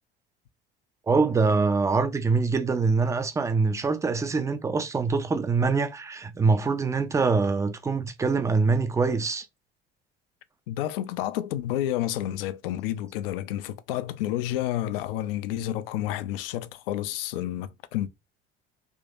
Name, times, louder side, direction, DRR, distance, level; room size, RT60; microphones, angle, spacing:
voice 1, 1.1-9.5, right 4 dB, 10° right, 0.4 m, -24 dB
voice 2, 10.7-18.1, left 13 dB, 65° left, 0.5 m, -30 dB
3.6 x 2.9 x 2.6 m
figure-of-eight pair, 55°, 31 cm